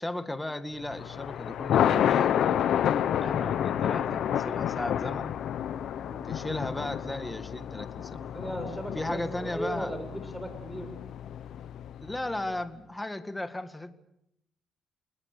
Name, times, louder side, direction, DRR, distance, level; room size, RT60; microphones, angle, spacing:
voice 1, 0.0-2.6 3.2-5.4 6.2-8.3 8.9-10.0 12.0-13.9, left 1 dB, 10° left, 9 dB, 2.0 m, -36 dB
Thunder, 0.9-12.2, left 10 dB, 75° left, 1.0 m, -29 dB
voice 2, 8.3-10.9, equal, 5° right, 8 dB, 6.8 m, -37 dB
28.5 x 20.0 x 6.9 m, 0.79 s
cardioid pair, 90°, 0 cm